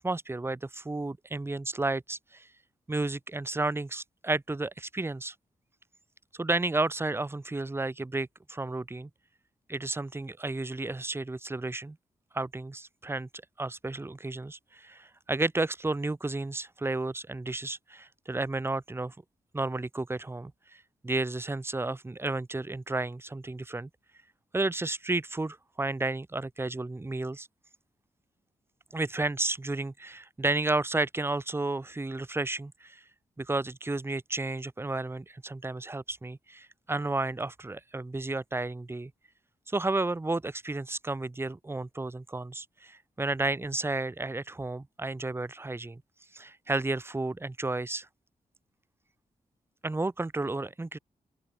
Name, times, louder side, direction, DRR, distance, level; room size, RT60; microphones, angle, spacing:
voice 1, 0.0-2.5 2.9-5.3 6.4-9.1 9.7-12.0 12.3-13.3 13.6-19.1 19.5-23.9 24.5-27.5 28.9-33.0 33.4-39.1 39.7-46.0 46.3-48.1 49.8-51.0, right 2 dB, 15° right, 0.7 m, -32 dB
open air
cardioid pair, 60°, 14 cm